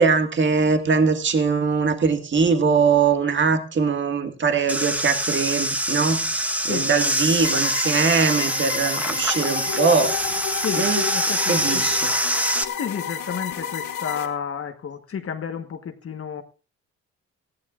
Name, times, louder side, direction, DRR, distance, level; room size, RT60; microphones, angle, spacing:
voice 1, 0.0-6.4 6.6-10.2 10.7-11.0 11.5-12.1, right 5 dB, 40° right, 1.9 m, -21 dB
sound 1, 4.7-12.6, right 1 dB, 5° right, 1.2 m, -25 dB
sound 2, 7.4-14.3, left 9 dB, 75° left, 2.8 m, -31 dB
voice 2, 10.6-11.9 12.8-16.4, left 7 dB, 45° left, 1.3 m, -31 dB
19.5 x 15.0 x 2.5 m
cardioid pair, 90°, 30 cm